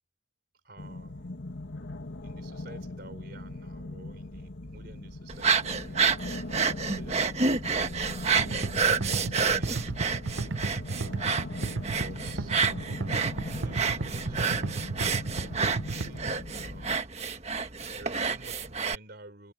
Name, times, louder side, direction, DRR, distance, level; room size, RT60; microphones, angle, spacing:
voice 1, 0.6-1.3 2.2-6.4 6.8-8.4 8.9-10.2 11.8-12.6 13.0-14.9 15.7-17.1 17.9-19.5, right 2 dB, 55° right, 4.2 m, -51 dB
sound 1, 0.8-17.0, left 2 dB, 75° left, 2.3 m, -40 dB
sound 2, 5.3-19.0, right 5 dB, 35° right, 1.5 m, -29 dB
sound 3, 8.4-16.3, right 3 dB, 75° right, 0.8 m, -33 dB
head